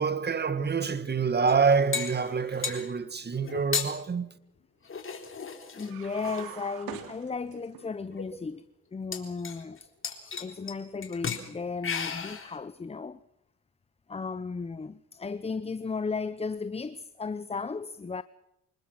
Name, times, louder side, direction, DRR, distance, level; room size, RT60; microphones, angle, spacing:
voice 1, 0.0-4.3, right 5 dB, 30° right, 1.8 m, -26 dB
sound 1, 1.5-2.9 3.5-3.9 4.9-6.5 7.3-7.4 7.8-8.2 9.1-9.8 10.0-10.7 11.0-11.5 11.8-12.6, left 6 dB, 35° left, 3.9 m, -34 dB
voice 2, 5.7-8.6 8.9-9.9 10.4-13.2 14.1-18.2, left 4 dB, 15° left, 0.8 m, -35 dB
sound 2, 5.8-7.8, right 10 dB, 80° right, 3.1 m, -43 dB
26.0 x 20.5 x 6.0 m
supercardioid pair, 85°, 35 cm